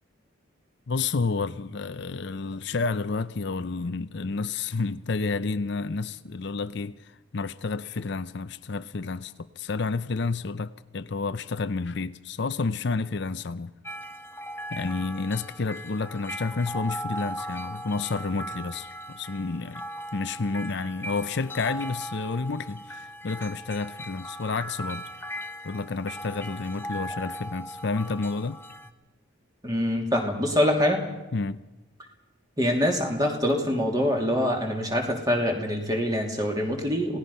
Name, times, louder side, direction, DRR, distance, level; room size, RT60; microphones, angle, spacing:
voice 1, 0.9-13.7 14.7-19.8 20.1-25.0 25.6-28.6 31.3-31.6, left 4 dB, 55° left, 0.6 m, -30 dB
sound 1, 13.8-28.9, equal, 10° left, 0.7 m, -38 dB
voice 2, 29.6-31.0 32.6-37.2, left 1 dB, 20° right, 2.9 m, -25 dB
27.0 x 17.5 x 5.5 m
head